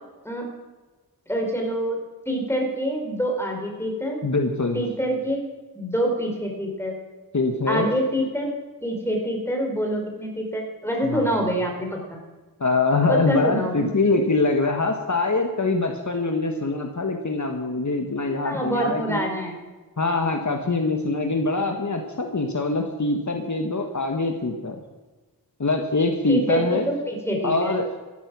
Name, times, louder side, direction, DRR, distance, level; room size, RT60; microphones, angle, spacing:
voice 1, 1.3-2.0 2.3-4.2 4.7-5.4 5.7-7.0 7.7-8.5 8.8-12.2 13.1-13.9 18.4-19.5 26.3-27.7, equal, 5° left, 1 dB, 4.4 m, -26 dB
voice 2, 4.2-4.8 7.3-7.9 11.0-11.2 12.6-19.2 20.0-24.8 25.6-26.9 27.4-28.0, left 3 dB, 55° left, 4 dB, 1.4 m, -23 dB
14.0 x 12.0 x 6.2 m, 1.2 s
wide cardioid pair, 70°, 35 cm